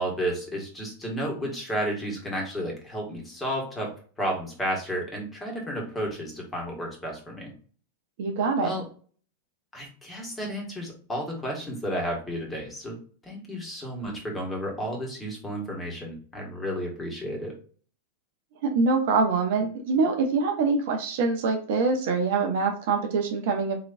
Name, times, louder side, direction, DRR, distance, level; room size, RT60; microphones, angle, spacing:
voice 1, 0.0-3.9 4.2-7.5 8.6-8.8 9.7-17.6, equal, 10° left, 0 dB, 1.5 m, -32 dB
voice 2, 8.2-8.7 18.6-23.8, right 4 dB, 55° right, 4 dB, 0.7 m, -24 dB
3.8 x 2.9 x 2.5 m, 0.41 s
figure-of-eight pair, 90°, 0 cm